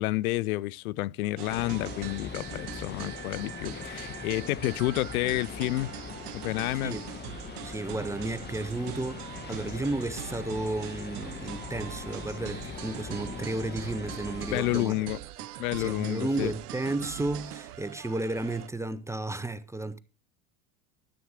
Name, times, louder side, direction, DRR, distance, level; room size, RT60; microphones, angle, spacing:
voice 1, 0.0-5.9 6.3-7.0 14.5-15.2 15.6-16.5, left 19 dB, 70° left, 0.6 m, -30 dB
sound 1, 1.4-18.7, right 13 dB, 85° right, 0.7 m, -42 dB
sound 2, 1.5-14.8, left 6 dB, 25° left, 1.1 m, -41 dB
voice 2, 7.6-15.0 15.4-15.5 15.8-20.0, right 2 dB, 5° right, 0.7 m, -33 dB
13.0 x 7.9 x 4.8 m
hypercardioid pair, 95°, 44 cm